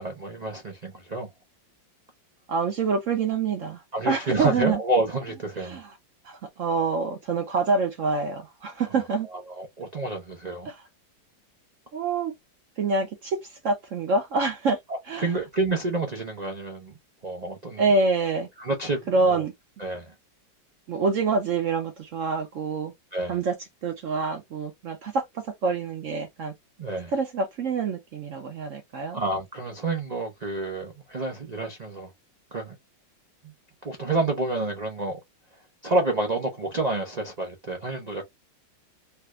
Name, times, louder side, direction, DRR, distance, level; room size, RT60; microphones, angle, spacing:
voice 1, 0.0-1.3 3.9-5.8 9.2-10.7 14.9-16.9 17.2-17.8 18.6-19.5 19.8-20.1 23.1-23.4 26.8-27.1 29.1-32.1 32.5-32.8 33.4-33.5 33.8-35.2 35.8-38.2, right 2 dB, 85° right, 0.3 m, -29 dB
voice 2, 2.5-4.8 5.7-5.8 6.2-9.3 10.7-10.8 11.9-12.3 12.8-14.8 15.1-15.3 17.8-18.5 19.1-19.5 20.9-22.9 23.3-23.5 23.8-26.5 27.1-29.2, right 4 dB, 70° right, 0.7 m, -26 dB
3.3 x 2.4 x 3.1 m
omnidirectional pair, 2.0 m